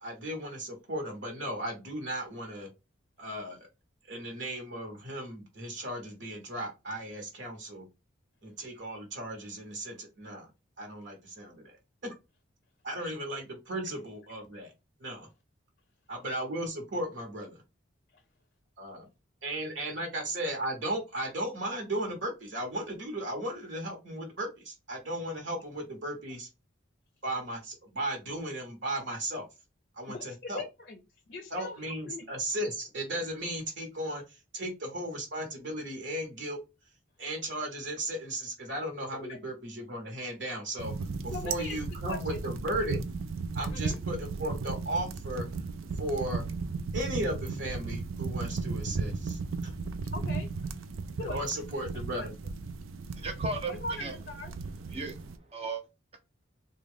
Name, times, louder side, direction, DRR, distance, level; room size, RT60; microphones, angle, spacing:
voice 1, 0.0-2.7 3.2-3.6 4.1-7.8 8.4-10.5 10.8-11.8 12.8-14.7 15.0-15.3 16.1-17.6 18.8-19.0 19.4-26.5 27.2-29.5 30.0-30.6 31.5-34.2 34.5-36.6 37.2-41.0 41.2-43.0 43.5-45.5 46.0-46.4 46.9-49.7 51.2-52.3, right 1 dB, 65° right, 1.0 m, -36 dB
voice 2, 30.1-31.0 31.3-32.3 39.1-39.4 41.3-41.8 42.0-42.4 43.7-44.0 50.1-50.7 51.2-51.8 52.1-52.3 53.7-54.5, left 2 dB, 50° left, 0.5 m, -41 dB
sound 1, 40.8-55.4, right 4 dB, 90° right, 0.4 m, -35 dB
voice 3, 53.2-54.2 54.9-55.8, right 3 dB, 30° right, 0.6 m, -36 dB
3.6 x 2.2 x 3.4 m
head